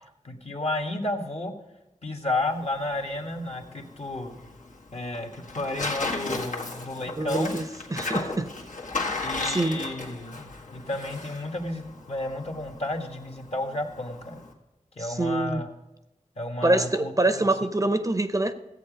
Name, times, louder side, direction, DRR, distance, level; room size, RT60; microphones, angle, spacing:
voice 1, 0.2-1.5 2.0-4.4 4.9-7.5 9.2-14.4 15.0-15.7 16.4-17.5, left 2 dB, 50° left, 1.5 m, -32 dB
Tearing, 2.3-14.5, left 3 dB, 75° left, 1.7 m, -36 dB
voice 2, 7.2-7.6 7.9-8.5 9.1-9.2 9.4-9.8 15.0-15.6 16.6-18.5, right 2 dB, 25° right, 0.6 m, -25 dB
14.0 x 8.3 x 5.1 m
wide cardioid pair, 90°, 13 cm